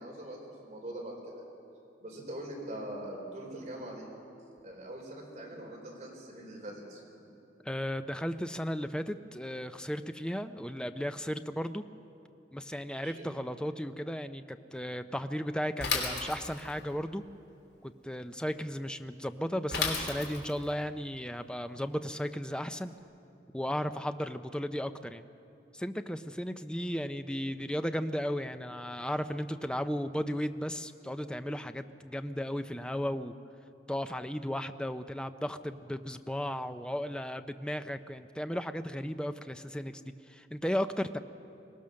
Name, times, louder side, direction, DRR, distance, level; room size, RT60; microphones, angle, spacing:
voice 1, 0.0-1.5 2.0-4.0 4.6-7.3 12.9-13.2, right 1 dB, 40° right, -2 dB, 4.5 m, -43 dB
voice 2, 7.7-11.8 12.5-17.2 17.8-22.9 23.5-25.2 25.7-33.3 33.9-40.0 40.3-41.2, equal, 5° left, 9 dB, 0.5 m, -35 dB
Bicycle / Mechanisms, 15.8-16.8 19.7-20.6, left 4 dB, 65° left, 2.9 m, -32 dB
22.5 x 18.0 x 6.4 m, 2.7 s
head